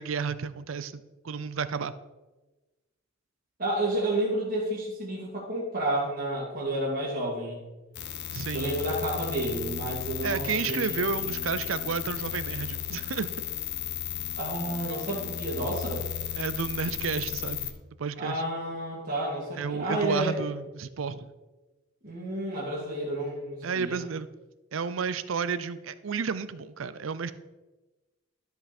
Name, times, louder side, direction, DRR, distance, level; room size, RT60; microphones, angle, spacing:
voice 1, 0.0-1.9 8.3-8.7 10.2-13.3 16.3-17.7 18.0-18.4 19.6-21.3 23.6-24.3 24.7-27.3, right 5 dB, 80° right, 14 dB, 0.5 m, -32 dB
voice 2, 3.6-7.6 8.5-11.1 14.4-16.1 18.2-20.4 22.0-24.0, right 1 dB, 45° right, -6 dB, 2.1 m, -31 dB
sound 1, 8.0-17.7, left 9 dB, 60° left, 0.8 m, -34 dB
12.5 x 5.5 x 4.3 m, 1.2 s
head